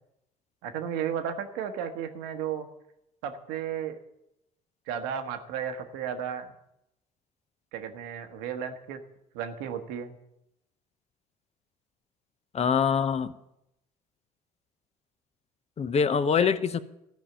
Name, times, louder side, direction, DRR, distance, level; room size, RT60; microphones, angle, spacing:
voice 1, 0.6-2.7 3.2-4.0 4.9-6.5 7.7-9.0 9.3-10.2 16.4-16.5, right 8 dB, 70° right, 7 dB, 1.3 m, -34 dB
voice 2, 12.5-13.3 15.8-16.8, left 6 dB, 35° left, 13 dB, 0.7 m, -24 dB
14.0 x 5.5 x 8.8 m, 0.83 s
hypercardioid pair, 55°, 19 cm